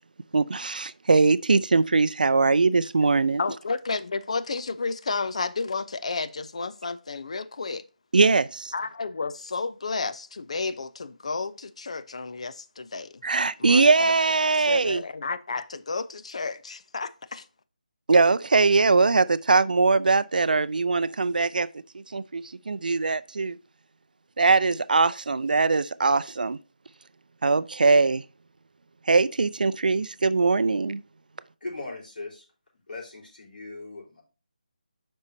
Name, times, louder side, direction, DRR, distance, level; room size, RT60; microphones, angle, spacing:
voice 1, 0.3-3.4 8.1-8.7 13.2-15.0 18.1-21.7 21.9-23.6 24.4-26.6 27.4-28.2 29.1-31.0, right 4 dB, 70° right, 0.4 m, -21 dB
voice 2, 3.4-7.9 8.7-13.2 13.6-14.2 14.6-17.5, left 4 dB, 45° left, 0.5 m, -32 dB
voice 3, 31.6-32.4 32.9-34.2, left 2 dB, 80° left, 3.9 m, -39 dB
8.1 x 5.4 x 2.7 m
figure-of-eight pair, 175°, 5 cm